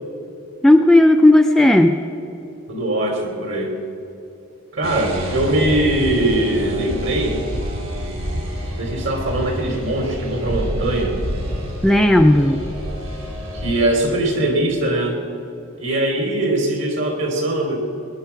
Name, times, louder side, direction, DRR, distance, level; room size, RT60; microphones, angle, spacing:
voice 1, 0.6-2.0 11.8-12.6, left 1 dB, ahead, 4 dB, 0.4 m, -13 dB
voice 2, 2.7-3.7 4.7-7.4 8.8-11.2 13.5-15.3 15.8-17.8, right 1 dB, 60° right, 3 dB, 2.9 m, -21 dB
sound 1, 4.8-13.9, equal, 75° right, 4.3 m, -28 dB
20.5 x 10.5 x 5.7 m, 2.7 s
head